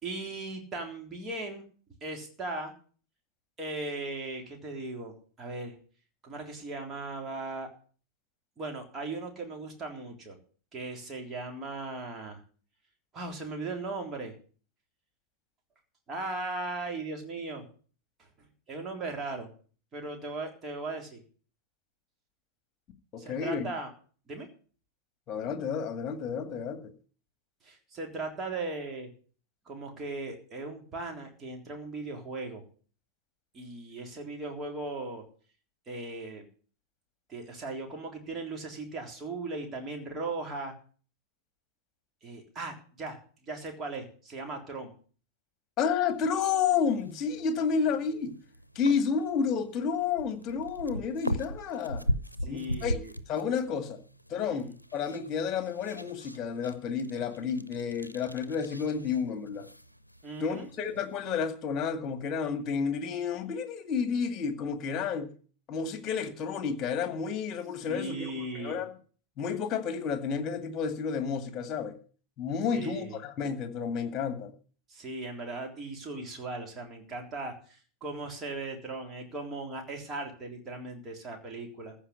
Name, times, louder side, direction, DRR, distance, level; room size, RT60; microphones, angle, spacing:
voice 1, 0.0-1.6 2.0-2.7 3.6-5.8 6.2-7.7 8.6-10.4 10.7-12.4 13.1-14.3 16.1-17.6 18.7-19.5 19.9-21.2 23.2-23.9 24.3-24.5 27.6-29.1 29.7-32.6 33.5-35.2 35.9-36.5 37.3-40.7 42.2-43.2 43.4-44.9 52.4-53.1 54.5-54.7 60.2-60.7 67.9-68.8 72.7-73.2 74.9-82.0, right 2 dB, 25° right, 2 dB, 3.6 m, -38 dB
voice 2, 23.1-23.7 25.3-26.9 45.8-48.3 48.8-52.0 52.4-53.0 53.3-54.0 54.3-59.7 60.4-65.3 65.7-68.9 69.4-72.0 72.4-74.5, left 6 dB, 30° left, 9 dB, 2.1 m, -31 dB
sound 1, 46.1-61.4, equal, 85° left, 0.7 m, -40 dB
14.5 x 5.3 x 9.6 m, 0.42 s
figure-of-eight pair, 90°, 0 cm